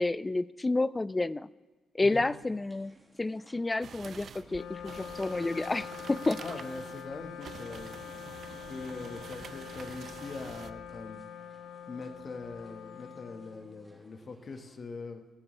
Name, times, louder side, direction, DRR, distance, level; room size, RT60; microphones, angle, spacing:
voice 1, 0.0-1.5 1.9-6.4, left 2 dB, 20° left, 19 dB, 0.3 m, -30 dB
sound 1, 2.1-14.8, right 1 dB, 10° right, 2.0 m, -60 dB
sound 2, 3.8-10.7, right 7 dB, 55° right, 0.5 m, -47 dB
Wind instrument woodwind instrument, 4.4-14.0, left 9 dB, 90° left, 0.7 m, -45 dB
voice 2, 6.4-8.0 8.7-11.2 11.9-15.2, left 4 dB, 40° left, 6 dB, 1.4 m, -42 dB
15.5 x 14.5 x 3.3 m, 1.3 s
cardioid pair, 90°, 0 cm